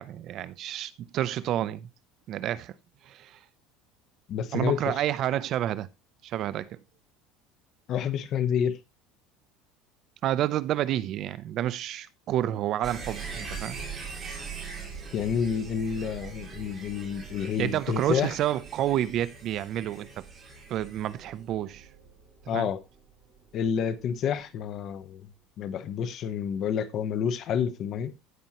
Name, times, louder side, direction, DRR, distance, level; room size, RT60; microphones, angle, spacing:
voice 1, 0.0-1.9 2.3-2.7 3.0-3.4 4.5-5.9 6.2-6.8 10.2-13.8 17.6-20.2 20.7-21.9 22.5-22.7, right 12 dB, 40° right, 0.5 m, -29 dB
voice 2, 4.3-4.9 7.9-8.7 15.1-18.3 22.5-22.8 23.5-25.2 25.6-28.1, left 8 dB, 40° left, 1.1 m, -29 dB
sound 1, 12.8-23.6 23.9-24.0, right 5 dB, 20° right, 4.0 m, -42 dB
16.0 x 5.5 x 3.0 m
cardioid pair, 155°, 0 cm